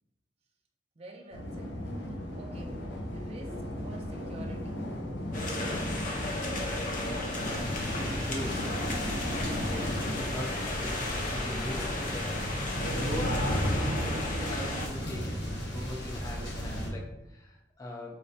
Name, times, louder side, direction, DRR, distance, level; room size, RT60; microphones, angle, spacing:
voice 1, 1.0-1.8 2.1-2.8 3.1-4.8, right 2 dB, 35° right, 2 dB, 0.4 m, -49 dB
sound 1, 1.3-10.2, equal, 85° left, 0.8 m, -36 dB
sound 2, 5.3-14.9, left 2 dB, 50° left, 0.7 m, -34 dB
voice 2, 6.8-8.8 9.5-18.2, equal, 20° left, -2 dB, 0.5 m, -41 dB
sound 3, 7.4-16.9, equal, 65° left, 1.0 m, -35 dB
4.8 x 3.2 x 2.7 m, 0.94 s
head